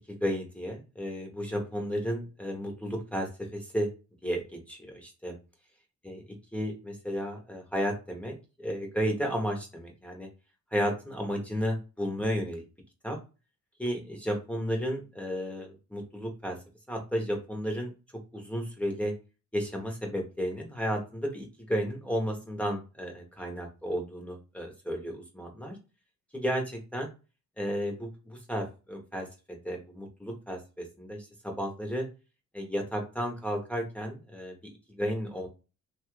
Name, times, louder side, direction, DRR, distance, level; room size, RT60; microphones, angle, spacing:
voice 1, 0.1-3.9 4.2-5.4 6.0-6.2 6.5-10.3 10.7-12.6 13.0-13.2 13.8-16.6 16.9-17.9 18.3-19.1 19.5-25.8 26.3-27.1 27.6-32.1 32.5-34.6 34.9-35.5, equal, 5° left, 0 dB, 0.8 m, -33 dB
2.9 x 2.3 x 3.0 m, 0.30 s
cardioid pair, 90°, 30 cm